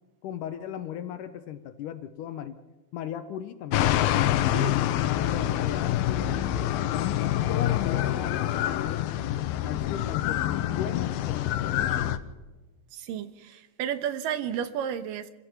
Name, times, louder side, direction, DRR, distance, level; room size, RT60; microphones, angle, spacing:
voice 1, 0.2-2.6 2.9-4.3 4.8-6.4 6.7-12.1, left 10 dB, 70° left, 10 dB, 2.1 m, -37 dB
sound 1, 3.7-12.2, left 12 dB, 90° left, 2.7 m, -26 dB
voice 2, 12.9-15.3, right 9 dB, 75° right, 10 dB, 2.7 m, -32 dB
28.0 x 16.0 x 6.0 m, 1.1 s
omnidirectional pair, 4.2 m